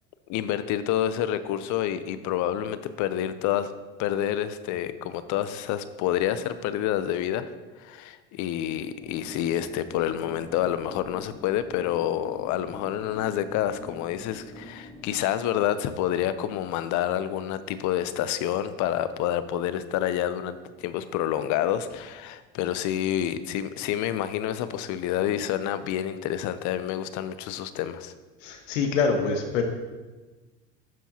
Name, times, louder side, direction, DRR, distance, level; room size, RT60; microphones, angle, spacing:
voice 1, 0.3-3.7 4.0-7.5 7.8-28.1, left 11 dB, 50° left, 13 dB, 0.7 m, -28 dB
sound 1, 9.0-15.1, left 1 dB, 15° left, 1.0 m, -45 dB
voice 2, 28.4-29.6, left 5 dB, 75° left, 5 dB, 1.4 m, -25 dB
12.0 x 7.0 x 2.9 m, 1.3 s
hypercardioid pair, 90°, 37 cm